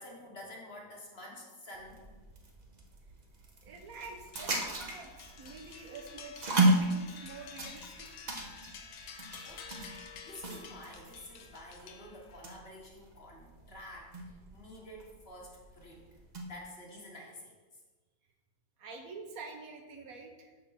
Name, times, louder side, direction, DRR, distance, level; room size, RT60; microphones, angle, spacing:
voice 1, 0.0-2.0 9.4-9.7 10.0-16.0 16.5-17.5, left 1 dB, 40° left, -1 dB, 1.3 m, -49 dB
sound 1, 1.7-16.6, right 2 dB, 35° right, 0.8 m, -36 dB
voice 2, 3.6-8.1 13.7-13.8 18.8-20.5, right 4 dB, 65° right, 2 dB, 1.3 m, -47 dB
sound 2, 4.3-12.5, left 6 dB, 75° left, 1.3 m, -50 dB
6.9 x 4.2 x 6.1 m, 1.3 s
omnidirectional pair, 1.7 m